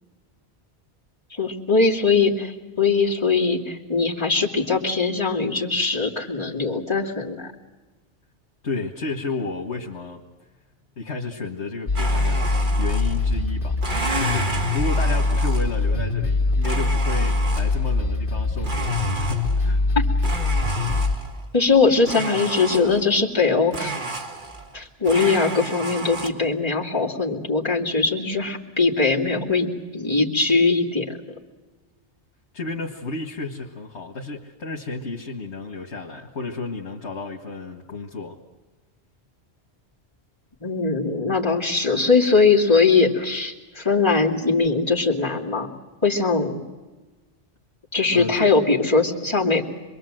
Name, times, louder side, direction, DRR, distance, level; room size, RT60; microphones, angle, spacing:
voice 1, 1.3-7.5 19.9-20.1 21.5-24.0 24.7-31.4 40.6-45.7 46.0-46.6 47.9-49.7, left 4 dB, 25° left, -4 dB, 2.7 m, -21 dB
voice 2, 8.6-10.2 11.0-13.8 14.2-19.8 32.5-38.4 48.1-48.5, left 3 dB, 80° left, 0 dB, 1.9 m, -32 dB
sound 1, 11.9-21.2, left 3 dB, 50° left, 2.0 m, -23 dB
Domestic sounds home sounds, 12.0-13.4 13.8-15.9 16.6-17.9 18.6-19.8 20.2-21.4 22.0-23.2 23.7-24.8 25.0-26.3, right 3 dB, 45° right, 1.9 m, -31 dB
26.5 x 22.5 x 7.7 m, 1.3 s
omnidirectional pair, 1.1 m